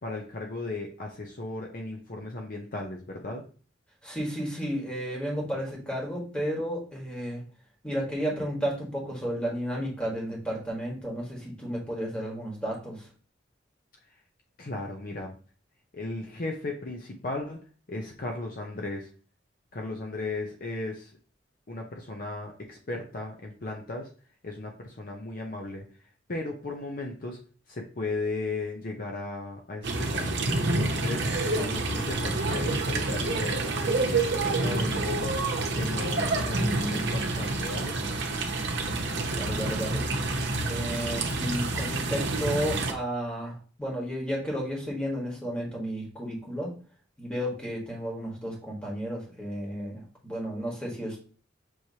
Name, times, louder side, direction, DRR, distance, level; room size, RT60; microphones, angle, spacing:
voice 1, 0.0-3.4 14.0-14.2 14.6-15.3 15.9-19.1 19.7-21.2 21.7-24.1 24.4-27.4 27.7-35.4 35.7-38.0, left 2 dB, 50° left, 1 dB, 0.7 m, -36 dB
voice 2, 4.0-7.4 7.8-13.1 39.3-40.1 40.6-46.7 47.2-51.2, equal, 5° left, -3 dB, 1.5 m, -32 dB
sound 1, 29.8-42.9, right 2 dB, 65° right, 0.8 m, -28 dB
6.3 x 3.1 x 2.8 m, 0.38 s
head